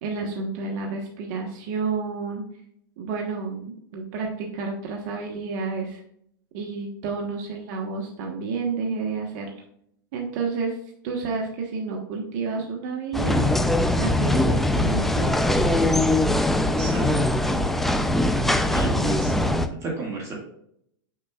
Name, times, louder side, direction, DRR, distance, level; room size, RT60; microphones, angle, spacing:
voice 1, 0.0-2.4 3.0-6.0 6.5-9.5 10.1-10.8 11.0-13.5 14.0-15.3, right 4 dB, 60° right, 0 dB, 1.2 m, -30 dB
sound 1, 13.1-19.7, left 1 dB, ahead, 0.4 m, -21 dB
voice 2, 16.6-17.1 18.7-19.3 19.8-20.3, right 3 dB, 25° right, -2 dB, 2.0 m, -32 dB
6.7 x 6.4 x 2.4 m, 0.70 s
supercardioid pair, 130°, 11 cm